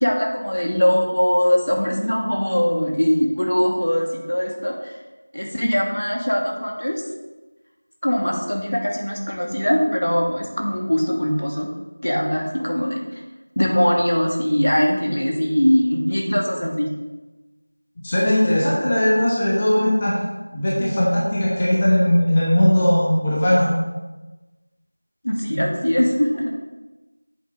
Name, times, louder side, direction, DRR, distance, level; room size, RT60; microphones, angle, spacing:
voice 1, 0.0-4.9 5.3-7.0 8.0-11.7 12.0-13.0 13.6-16.9 25.2-26.5, equal, 90° left, -1 dB, 2.2 m, -21 dB
voice 2, 18.0-20.2 20.5-23.7, left 1 dB, 15° left, -6 dB, 1.1 m, -18 dB
9.1 x 7.6 x 3.9 m, 1.1 s
figure-of-eight pair, 180°, 0 cm